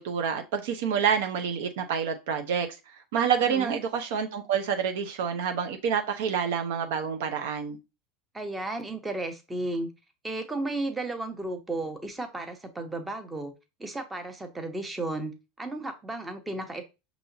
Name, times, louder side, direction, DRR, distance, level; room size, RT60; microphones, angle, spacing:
voice 1, 0.0-2.7 3.1-7.8, right 7 dB, 70° right, 0.7 m, -28 dB
voice 2, 8.3-9.9 10.2-13.5 13.8-15.3 15.6-16.8, right 2 dB, 15° right, 0.9 m, -33 dB
5.4 x 2.9 x 2.7 m
hypercardioid pair, 95°, 0 cm